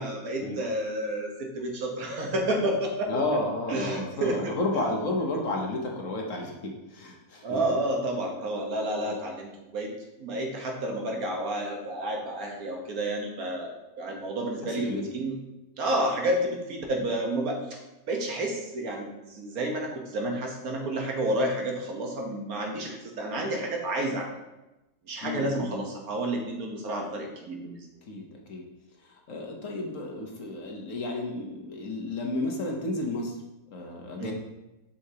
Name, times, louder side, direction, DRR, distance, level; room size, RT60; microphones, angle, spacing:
voice 1, 0.0-3.2 3.7-4.6 7.4-9.9 10.2-13.7 14.0-15.4 15.8-17.8 18.1-24.4 25.1-27.8 34.2-34.3, right 1 dB, 70° right, 1 dB, 1.6 m, -30 dB
voice 2, 3.1-7.8 9.0-9.1 14.6-15.0 25.2-25.9 28.1-28.6 29.0-33.3 33.7-34.3, left 2 dB, 60° left, 1 dB, 1.3 m, -32 dB
7.9 x 5.8 x 2.8 m, 0.99 s
omnidirectional pair, 1.6 m